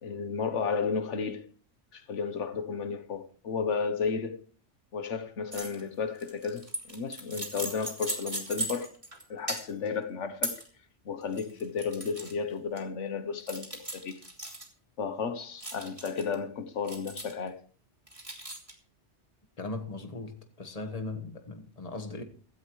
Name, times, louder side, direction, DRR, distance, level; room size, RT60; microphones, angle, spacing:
voice 1, 0.0-1.4 1.9-4.4 4.9-8.9 9.3-10.5 11.0-14.2 15.0-17.6, left 5 dB, 85° left, 1.4 m, -33 dB
sound 1, 5.5-5.8 6.1-9.2 9.5-9.9 10.4-10.7 11.2-12.3 12.8-12.9 13.5-14.7 15.6-16.3 16.9-17.5 18.1-18.7, right 1 dB, 30° right, 3.0 m, -37 dB
voice 2, 19.6-22.2, left 3 dB, 35° left, 1.5 m, -38 dB
16.5 x 13.5 x 3.1 m
omnidirectional pair, 1.2 m